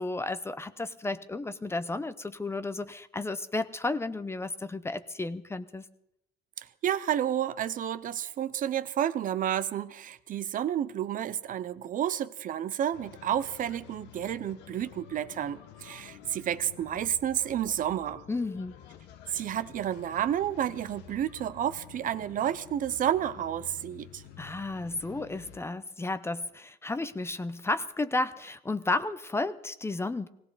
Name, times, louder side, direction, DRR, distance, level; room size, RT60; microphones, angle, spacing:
voice 1, 0.0-5.8 18.3-18.8 24.4-30.3, left 2 dB, 15° left, 13 dB, 0.6 m, -33 dB
voice 2, 6.8-18.2 19.3-24.2, right 10 dB, 50° right, 14 dB, 0.7 m, -30 dB
sound 1, 12.9-25.6, left 11 dB, 90° left, 1.0 m, -50 dB
17.5 x 17.5 x 4.1 m, 0.77 s
cardioid pair, 110°, 17 cm